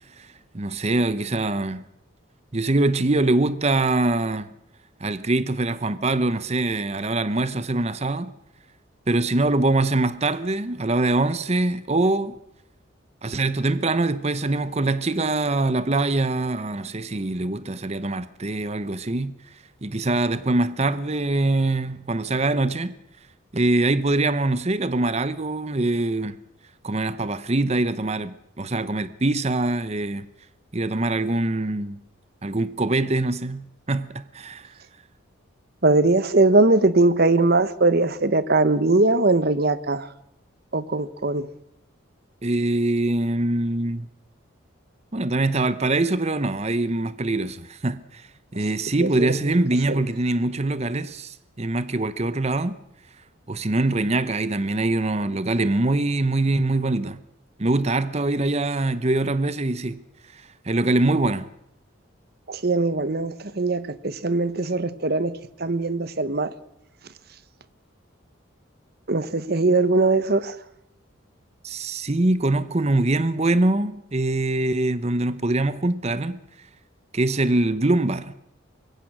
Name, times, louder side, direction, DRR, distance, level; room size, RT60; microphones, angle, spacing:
voice 1, 0.2-1.8 2.5-4.5 5.0-8.3 9.1-12.4 13.2-19.4 19.8-23.0 23.5-26.4 26.8-30.3 30.7-32.0 32.4-34.7 42.4-44.1 45.1-48.3 48.5-52.8 53.5-57.2 57.6-60.0 60.3-61.5 71.6-76.4 77.1-78.3, right 2 dB, 30° right, 0.8 m, -23 dB
voice 2, 35.8-40.1 40.7-41.5 49.0-49.3 49.9-50.0 62.5-65.3 65.6-66.5 69.1-70.5, right 2 dB, 50° right, 1.1 m, -20 dB
25.0 x 22.0 x 6.2 m
head